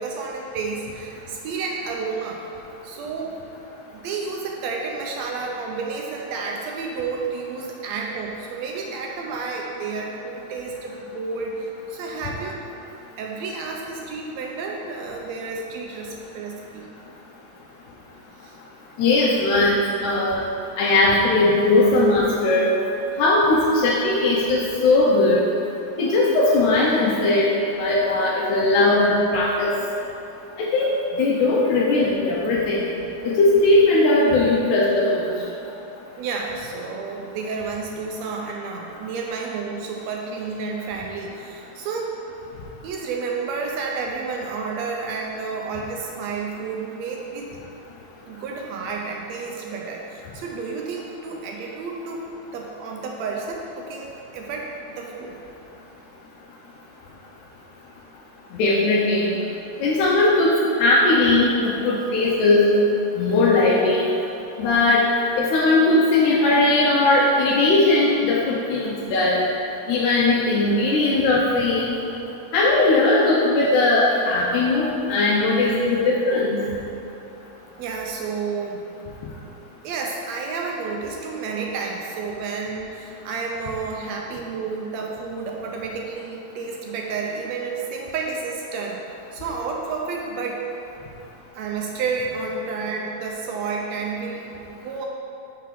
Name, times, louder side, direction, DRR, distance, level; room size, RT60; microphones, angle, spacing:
voice 1, 0.0-2.4 2.8-3.4 3.9-12.6 13.2-16.9 18.4-18.6 36.2-42.1 42.8-47.6 48.3-54.1 54.3-55.4 77.8-78.8 79.8-90.6 91.5-95.0, right 4 dB, 80° right, 0 dB, 1.6 m, -31 dB
voice 2, 19.0-19.8 20.0-20.4 20.8-22.7 23.2-25.4 26.0-27.5 27.8-29.7 30.6-30.9 31.2-32.9 33.2-35.3 58.5-59.4 59.8-62.8 63.2-64.1 64.6-65.0 65.4-69.5 69.9-71.9 72.5-76.6, left 2 dB, 85° left, -6 dB, 2.1 m, -19 dB
5.7 x 3.6 x 5.8 m, 2.8 s
omnidirectional pair, 3.4 m